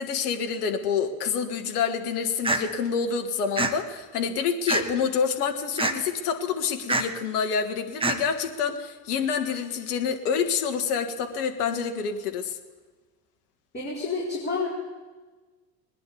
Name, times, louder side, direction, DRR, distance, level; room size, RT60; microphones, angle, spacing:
voice 1, 0.0-12.6, left 6 dB, 65° left, 5 dB, 1.7 m, -27 dB
sound 1, 2.4-2.6 3.6-3.7 4.7-5.0 5.8-5.9 6.9-7.0 8.0-8.2, right 2 dB, 10° right, 1.1 m, -24 dB
voice 2, 13.7-14.7, left 4 dB, 20° left, -6 dB, 4.5 m, -29 dB
20.5 x 9.7 x 7.0 m, 1.3 s
figure-of-eight pair, 65°, 50 cm